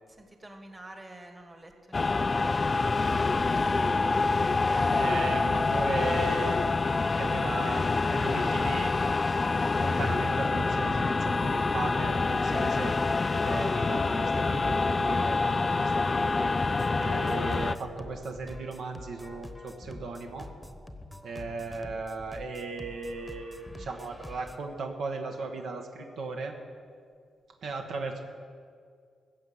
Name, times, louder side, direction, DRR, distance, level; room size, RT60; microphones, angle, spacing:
voice 1, 0.1-3.3, right 1 dB, 20° right, 5 dB, 1.6 m, -49 dB
sound 1, 1.9-17.7, left 3 dB, 35° left, 0.3 m, -26 dB
voice 2, 4.9-6.7 7.1-8.9 9.8-13.0 13.3-16.5 17.0-20.5 21.2-26.6 27.6-28.2, right 3 dB, 75° right, 4 dB, 1.2 m, -36 dB
sound 2, 16.6-24.6, left 1 dB, 10° left, 1.0 m, -46 dB
15.0 x 6.8 x 7.9 m, 2.1 s
cardioid pair, 75°, 0 cm